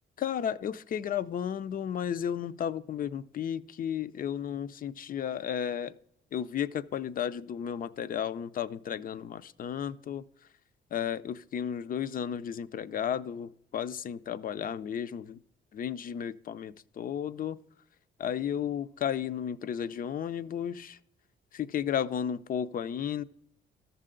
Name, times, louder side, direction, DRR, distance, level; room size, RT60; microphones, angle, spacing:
voice 1, 0.2-5.9 6.3-10.2 10.9-15.4 15.7-17.6 18.2-21.0 21.5-23.2, left 9 dB, 45° left, 15 dB, 0.5 m, -33 dB
13.0 x 6.7 x 3.7 m, 0.73 s
cardioid pair, 90°, 20 cm